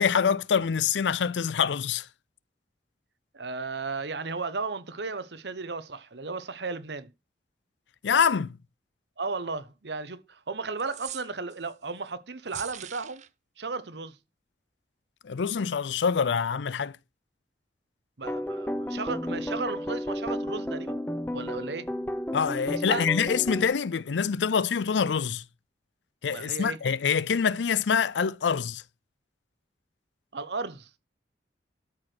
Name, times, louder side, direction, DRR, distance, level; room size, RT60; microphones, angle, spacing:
voice 1, 0.0-2.1 8.0-8.5 15.2-17.0 22.3-25.4 26.2-28.8, left 6 dB, 90° left, 0.5 m, -25 dB
voice 2, 3.3-7.1 9.2-13.2 13.6-14.2 18.2-20.9 21.3-21.9 22.7-23.3 26.3-26.8 30.3-30.9, right 4 dB, 75° right, 1.0 m, -35 dB
sound 1, 10.8-11.7 12.5-13.3, right 12 dB, 40° right, 0.5 m, -41 dB
sound 2, 18.2-23.7, equal, 10° left, 0.9 m, -32 dB
12.5 x 4.8 x 6.1 m
head